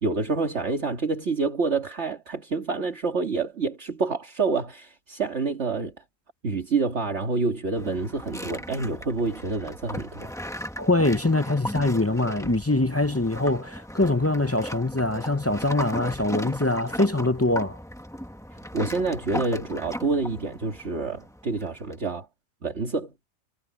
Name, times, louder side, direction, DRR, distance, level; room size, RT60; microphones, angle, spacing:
voice 1, 0.0-5.9 6.4-10.3 18.5-22.3 22.6-23.1, right 4 dB, 55° right, 2.3 m, -27 dB
sound 1, 7.8-21.9, equal, ahead, 1.3 m, -37 dB
voice 2, 10.8-17.8, left 2 dB, 20° left, 0.4 m, -23 dB
omnidirectional pair, 1.4 m